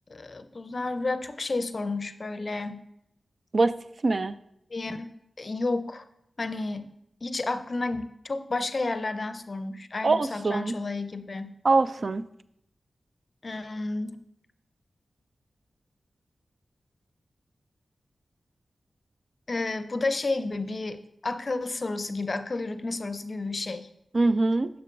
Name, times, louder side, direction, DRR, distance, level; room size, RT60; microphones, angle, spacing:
voice 1, 0.1-2.8 4.7-5.1 5.4-6.0 6.4-6.9 7.2-11.6 13.4-14.2 19.5-23.9, left 3 dB, 50° left, 10 dB, 0.5 m, -31 dB
voice 2, 4.0-4.3 10.0-10.7 11.6-12.2 24.1-24.7, right 3 dB, 55° right, 14 dB, 0.3 m, -23 dB
6.9 x 6.6 x 2.5 m, 0.78 s
cardioid pair, 45°, 0 cm